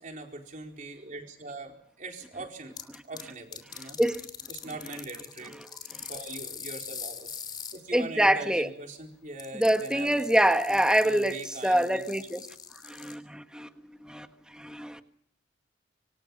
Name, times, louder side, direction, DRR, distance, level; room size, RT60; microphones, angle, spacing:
voice 1, 0.0-2.8 3.0-4.0 4.5-5.5 6.1-7.3 7.7-10.4 10.7-12.3, right 2 dB, 40° right, 4.5 m, -42 dB
sound 1, 2.8-3.2 3.5-7.8 9.4-13.1, left 7 dB, 25° left, 3.2 m, -42 dB
voice 2, 7.9-8.7 9.6-12.5 12.8-14.3 14.5-15.0, right 1 dB, 5° right, 1.5 m, -25 dB
26.5 x 25.5 x 5.6 m
head